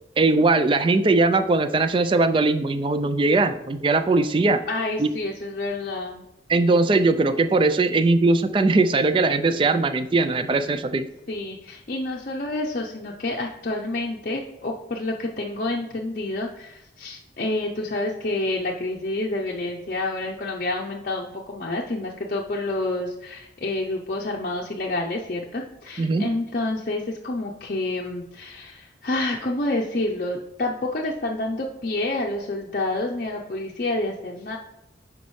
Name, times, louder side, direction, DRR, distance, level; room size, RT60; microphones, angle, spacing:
voice 1, 0.2-4.6 5.0-5.1 6.5-11.1 26.0-26.3, right 3 dB, 25° right, 10 dB, 0.3 m, -20 dB
voice 2, 4.7-6.2 11.3-34.6, left 2 dB, 45° left, -2 dB, 0.6 m, -28 dB
9.6 x 5.2 x 3.1 m, 0.87 s
head